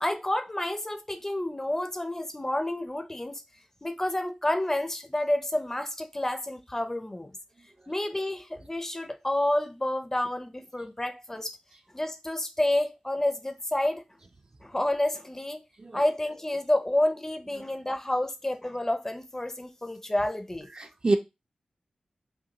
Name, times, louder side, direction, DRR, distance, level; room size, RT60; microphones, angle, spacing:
voice 1, 0.0-3.4 3.8-7.3 7.9-11.6 11.9-14.0 14.6-15.6 15.9-20.7, left 1 dB, 20° left, 0.5 m, -29 dB
voice 2, 15.8-16.1 20.7-21.2, right 2 dB, 40° right, 0.5 m, -27 dB
5.8 x 2.2 x 2.7 m
wide cardioid pair, 90°, 2 cm